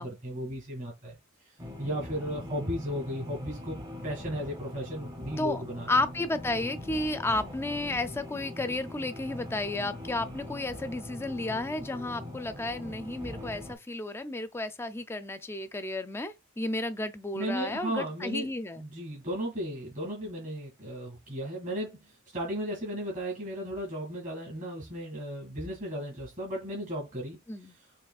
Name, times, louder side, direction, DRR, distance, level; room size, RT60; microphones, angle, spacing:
voice 1, 0.0-3.8 4.0-5.9 17.3-18.5 18.8-27.9, equal, 40° right, 2.1 m, -35 dB
sound 1, 1.6-13.8, left 1 dB, 20° right, 0.9 m, -42 dB
voice 2, 5.9-18.8 27.5-27.7, left 2 dB, 10° left, 0.4 m, -32 dB
5.8 x 3.1 x 2.4 m
head